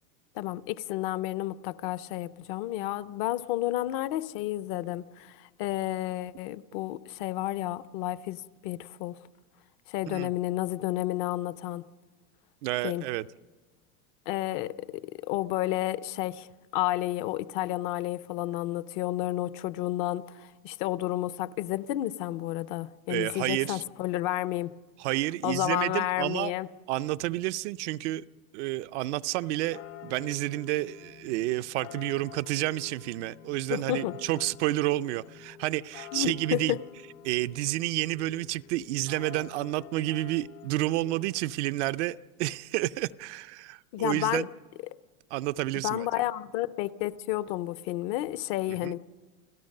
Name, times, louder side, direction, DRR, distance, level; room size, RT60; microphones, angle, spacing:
voice 1, 0.4-9.2 9.9-11.9 12.8-13.0 14.3-16.5 16.7-24.7 25.4-26.7 33.7-34.1 36.1-36.8 43.9-44.5 45.8-49.0, left 15 dB, 40° left, 0.6 m, -31 dB
voice 2, 12.6-13.2 23.1-23.8 25.0-26.5 26.9-28.2 28.5-36.8 37.2-44.5 45.3-46.1 48.8-48.9, right 17 dB, 55° right, 0.6 m, -30 dB
sound 1, 29.3-41.6, left 10 dB, 60° left, 1.1 m, -48 dB
30.0 x 16.5 x 6.6 m
supercardioid pair, 165°, 41 cm